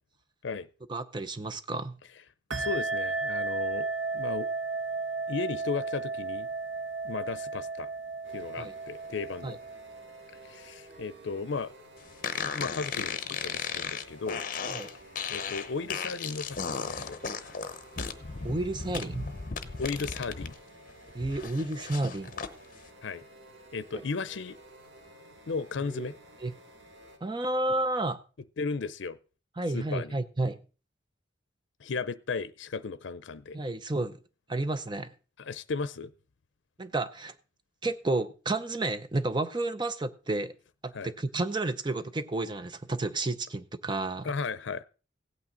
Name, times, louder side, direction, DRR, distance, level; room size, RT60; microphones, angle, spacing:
voice 1, 0.9-2.0 8.6-8.7 9.4-9.6 14.7-14.9 18.0-18.1 18.4-19.3 21.1-22.3 25.9-26.1 26.4-26.5 27.2-28.2 29.6-30.6 33.5-34.1 34.5-35.1 36.8-37.3 37.8-40.5 40.8-44.3, right 2 dB, 25° right, 0.6 m, -31 dB
sound 1, 2.5-10.6, right 4 dB, 90° right, 0.7 m, -34 dB
voice 2, 2.6-3.9 4.1-4.5 5.3-6.5 7.0-7.9 8.3-9.6 10.4-11.7 12.3-14.4 15.3-17.2 19.8-20.5 23.0-23.2 23.7-24.6 25.5-26.1 28.6-29.2 29.7-30.1 31.8-33.6 35.4-36.1 40.9-41.1 44.2-44.8, left 4 dB, 80° left, 0.5 m, -35 dB
sound 2, 8.2-27.2, right 1 dB, 70° right, 2.4 m, -53 dB
sound 3, 12.2-20.5 20.9-22.5, left 5 dB, 45° left, 0.8 m, -35 dB
16.5 x 8.8 x 3.8 m
head